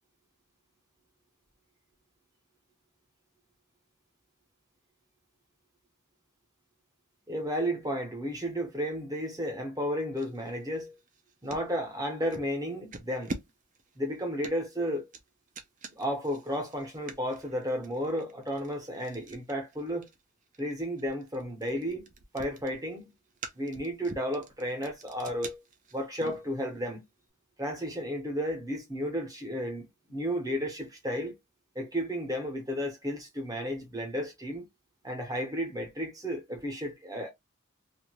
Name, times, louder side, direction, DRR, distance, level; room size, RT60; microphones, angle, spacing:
voice 1, 7.3-11.0 11.4-13.4 14.0-15.1 15.9-20.1 20.6-22.1 22.3-23.1 23.5-25.6 25.9-27.0 27.6-31.3 31.7-34.7 35.0-37.3, equal, 15° right, 0.9 m, -33 dB
sound 1, 10.2-11.7 12.3-12.5 12.9-26.9, right 3 dB, 35° right, 0.5 m, -46 dB
2.7 x 2.4 x 2.9 m
head